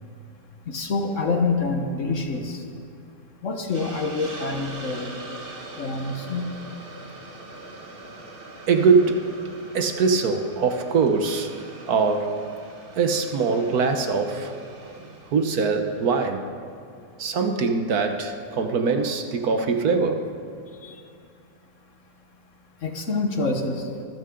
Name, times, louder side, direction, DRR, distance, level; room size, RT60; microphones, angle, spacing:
voice 1, 0.7-2.6 3.4-5.1 5.8-6.4 20.8-20.9 22.8-23.9, left 3 dB, 55° left, 4 dB, 1.5 m, -26 dB
Hiss, 3.7-16.3, right 2 dB, 35° right, 1.6 m, -42 dB
voice 2, 8.7-9.4 9.7-12.5 13.0-14.5 14.8-16.4 17.2-20.3, right 4 dB, 70° right, 6 dB, 1.5 m, -23 dB
24.5 x 14.0 x 3.8 m, 2.3 s
omnidirectional pair, 1.7 m